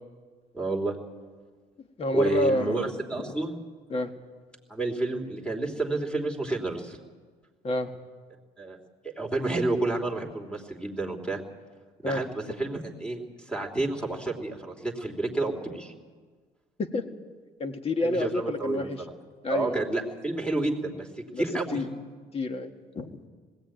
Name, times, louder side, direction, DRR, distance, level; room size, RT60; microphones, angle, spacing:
voice 1, 0.5-1.0 2.1-3.6 4.7-7.0 8.6-8.8 9.0-11.4 12.0-15.9 18.0-18.9 19.5-21.8, right 2 dB, 5° left, 4 dB, 3.1 m, -30 dB
voice 2, 1.8-2.9 3.2-3.3 3.9-4.1 7.6-7.9 12.0-12.2 16.8-17.1 17.6-19.0 19.4-19.9 21.3-21.4 21.7-21.9 22.3-23.1, left 2 dB, 35° left, 6 dB, 1.8 m, -29 dB
19.5 x 16.0 x 9.2 m, 1.5 s
cardioid pair, 110°, 17 cm